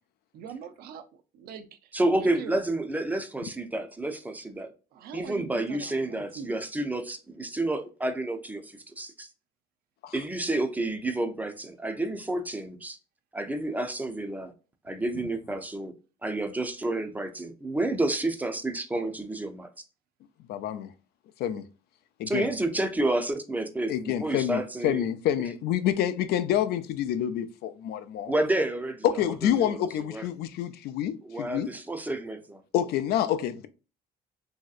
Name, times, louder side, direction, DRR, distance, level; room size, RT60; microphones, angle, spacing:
voice 1, 0.3-1.0 1.3-1.9 2.2-2.6 4.9-6.6, right 7 dB, 70° right, 0.4 m, -42 dB
voice 2, 1.9-4.7 5.1-9.3 10.1-13.0 13.3-14.5 14.8-15.9 16.2-19.7 22.3-25.1 28.3-30.3 31.2-32.6, right 2 dB, 10° right, 0.4 m, -30 dB
voice 3, 20.5-20.9 21.4-21.7 22.2-22.5 23.9-28.3 29.0-31.7 32.7-33.7, left 10 dB, 70° left, 0.4 m, -27 dB
3.1 x 2.7 x 2.3 m
cardioid pair, 110°, 17 cm